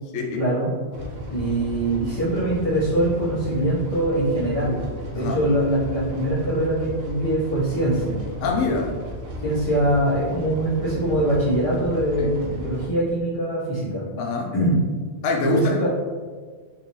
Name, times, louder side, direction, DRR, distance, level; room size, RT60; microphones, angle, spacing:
voice 1, 0.4-0.7 1.3-4.8 5.1-8.2 9.4-14.0 14.5-14.8 15.4-15.9, right 1 dB, 30° left, -10 dB, 1.0 m, -23 dB
sound 1, 0.9-12.9, equal, 60° right, 0.8 m, -35 dB
voice 2, 8.4-9.0 12.2-12.3 14.2-14.5 15.2-15.9, left 3 dB, 75° left, 0 dB, 0.9 m, -24 dB
3.8 x 2.7 x 3.0 m, 1.5 s
omnidirectional pair, 1.2 m